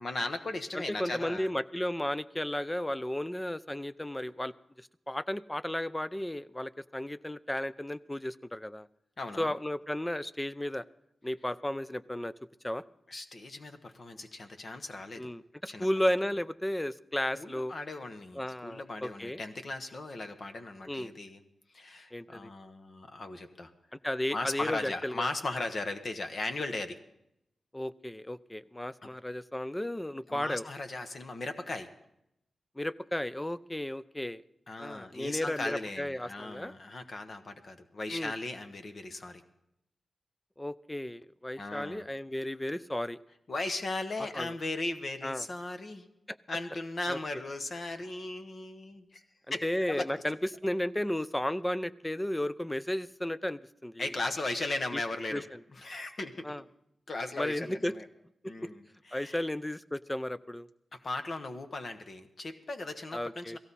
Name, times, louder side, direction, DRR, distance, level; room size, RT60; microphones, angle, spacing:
voice 1, 0.0-1.5 9.2-9.5 13.1-15.3 15.7-15.9 17.4-21.4 21.7-23.7 24.3-27.0 29.0-29.1 30.3-31.9 34.7-39.4 41.6-42.0 43.5-46.1 46.5-49.2 49.5-49.6 49.9-50.1 54.0-55.4 55.8-56.5 57.1-58.1 58.4-59.4 60.9-63.6, left 2 dB, 45° left, 7 dB, 1.1 m, -37 dB
voice 2, 0.7-8.9 9.4-10.8 11.2-12.3 12.6-12.8 15.2-17.7 18.3-19.4 20.9-21.1 22.1-22.5 24.0-25.3 27.7-30.7 32.8-34.4 34.8-36.7 38.1-38.3 40.6-43.2 44.3-44.6 45.2-45.5 46.3-46.4 47.1-47.2 49.6-50.4 50.6-54.1 54.9-55.0 55.3-55.6 56.4-56.6 57.4-57.9 58.6-58.7 59.1-60.7 63.1-63.6, left 1 dB, 10° left, 15 dB, 0.5 m, -34 dB
17.5 x 15.5 x 4.1 m, 0.80 s
wide cardioid pair, 120°, 0 cm